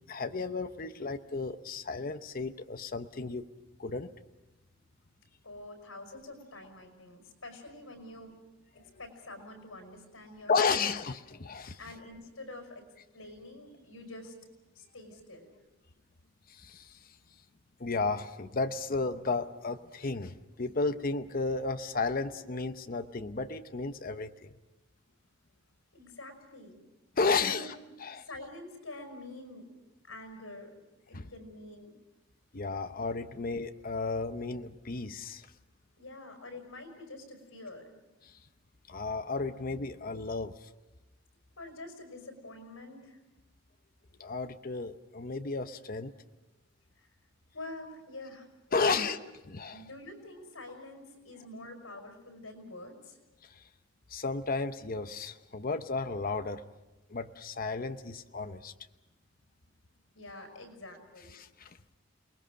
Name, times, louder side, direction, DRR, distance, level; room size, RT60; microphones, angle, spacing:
voice 1, 0.1-3.5 3.8-4.1 8.8-8.9 10.5-11.8 16.5-17.1 17.8-24.6 27.2-28.3 31.1-31.3 32.5-35.5 38.2-38.4 38.9-40.7 44.2-46.1 48.7-49.2 49.5-49.9 53.4-53.6 54.1-56.6 57.1-58.7 61.3-61.8, left 4 dB, 45° left, 8 dB, 0.8 m, -33 dB
voice 2, 5.4-8.3 9.0-10.8 11.8-12.8 13.1-14.3 14.8-15.5 25.9-26.8 27.3-27.7 28.2-29.7 30.0-30.7 31.1-31.9 36.0-38.0 41.6-43.2 47.5-48.5 48.8-49.1 49.7-53.2 60.2-61.3, left 2 dB, 85° left, 5 dB, 5.5 m, -46 dB
29.0 x 20.5 x 6.4 m, 1.1 s
head